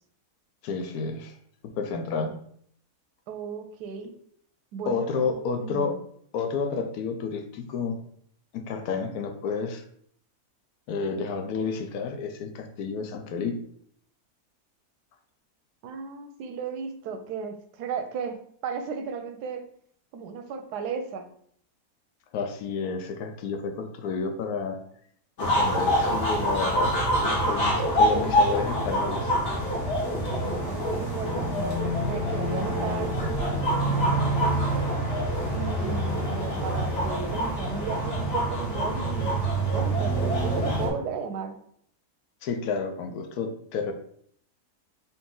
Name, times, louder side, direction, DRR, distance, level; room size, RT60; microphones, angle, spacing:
voice 1, 0.6-1.3 1.8-2.4 4.9-6.0 6.3-8.0 8.5-9.8 10.9-13.7 22.3-24.8 25.4-27.0 27.2-29.3 42.4-43.9, left 5 dB, 75° left, 6 dB, 1.1 m, -30 dB
voice 2, 3.3-4.1 4.7-6.0 15.8-19.6 20.1-21.3 30.4-34.9 35.5-39.3 39.7-41.6, right 6 dB, 90° right, 7 dB, 1.2 m, -35 dB
sound 1, 25.4-40.9, equal, 50° left, 1.4 m, -26 dB
4.2 x 2.7 x 3.7 m, 0.64 s
omnidirectional pair, 1.7 m